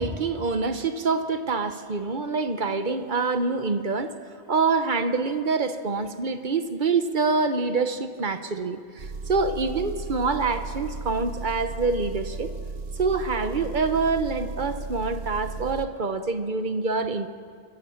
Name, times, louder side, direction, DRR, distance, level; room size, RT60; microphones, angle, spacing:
voice 1, 0.0-4.1 4.5-12.5 13.0-17.3, right 4 dB, 50° right, 9 dB, 1.1 m, -26 dB
Engine, 9.0-15.9, right 4 dB, 75° right, 1.3 m, -35 dB
25.0 x 14.5 x 7.2 m, 2.2 s
omnidirectional pair, 1.1 m